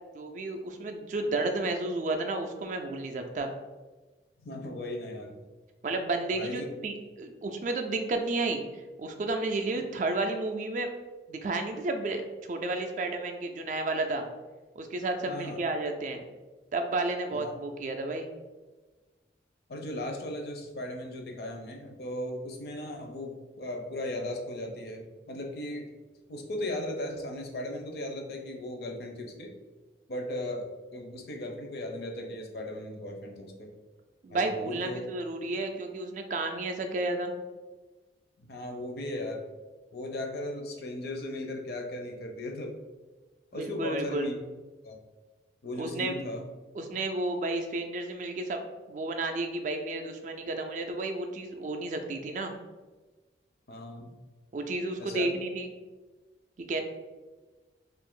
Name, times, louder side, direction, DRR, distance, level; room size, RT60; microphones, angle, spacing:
voice 1, 0.1-3.5 5.8-10.9 11.3-14.2 14.8-16.2 16.7-18.3 34.2-37.3 43.5-44.3 45.8-46.1 46.8-48.6 48.9-52.5 54.5-55.7 56.7-56.8, right 2 dB, 45° right, 5 dB, 0.3 m, -32 dB
voice 2, 4.4-5.4 6.3-6.7 15.3-15.6 17.3-17.5 19.7-25.9 26.3-29.5 30.1-33.7 34.3-35.1 38.4-39.5 39.9-42.8 43.5-44.3 44.8-45.0 45.6-46.5 53.7-54.1 55.0-55.3, left 1 dB, 60° left, 2 dB, 0.5 m, -37 dB
2.6 x 2.4 x 3.6 m, 1.2 s
head